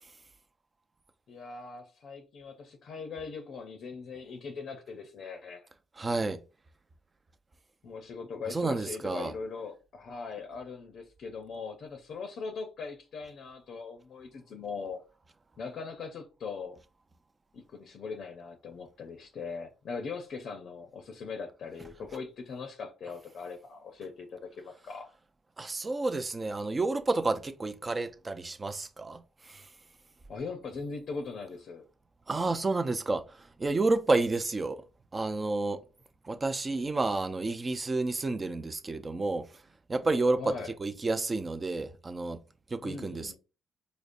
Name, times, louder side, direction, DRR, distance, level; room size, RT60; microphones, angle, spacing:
voice 1, 1.3-5.7 7.8-15.0 15.6-16.8 17.5-25.1 30.3-31.8 40.4-40.7 42.8-43.4, left 4 dB, 65° left, 0.5 m, -40 dB
voice 2, 6.0-6.4 8.5-9.3 25.6-29.7 32.3-34.8 35.1-35.8 36.2-39.5 39.9-40.5 40.8-42.4 42.7-43.4, right 3 dB, 30° right, 0.4 m, -30 dB
5.0 x 2.0 x 2.5 m
cardioid pair, 90°, 0 cm